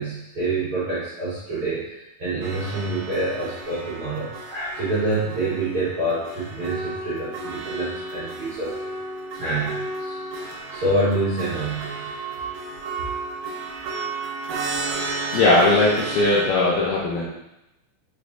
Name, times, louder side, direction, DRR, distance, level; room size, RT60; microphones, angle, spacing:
voice 1, 0.0-8.7 9.4-10.2 10.7-12.1, right 2 dB, 55° right, -12 dB, 1.6 m, -27 dB
sound 1, 2.4-16.5, right 3 dB, 75° right, 2.2 m, -33 dB
voice 2, 15.3-17.3, left 2 dB, 80° left, -6 dB, 1.7 m, -19 dB
5.4 x 3.3 x 2.5 m, 0.89 s
omnidirectional pair, 4.2 m